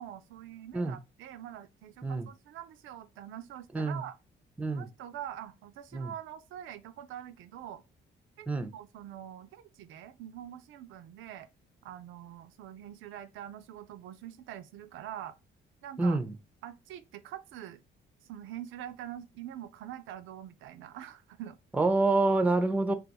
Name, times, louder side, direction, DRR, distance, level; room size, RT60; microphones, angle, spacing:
voice 1, 0.0-4.2 4.7-7.8 8.4-8.5 8.7-11.5 11.8-15.4 15.8-16.2 16.6-17.8 18.2-21.6, right 11 dB, 85° right, 0.4 m, -44 dB
voice 2, 16.0-16.3 21.7-22.9, right 2 dB, 5° right, 0.4 m, -27 dB
2.4 x 2.3 x 4.0 m
cardioid pair, 90°, 20 cm